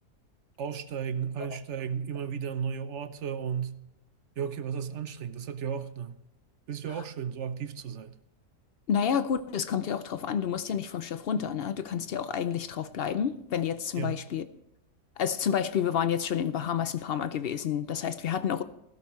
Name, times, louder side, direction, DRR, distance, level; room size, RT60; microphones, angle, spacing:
voice 1, 0.6-3.8 4.4-6.2 6.7-8.2 14.0-14.2, right 7 dB, 55° right, 1.0 m, -34 dB
voice 2, 8.9-14.4 15.2-18.6, left 8 dB, 75° left, 0.5 m, -29 dB
15.0 x 12.5 x 3.1 m
omnidirectional pair, 1.7 m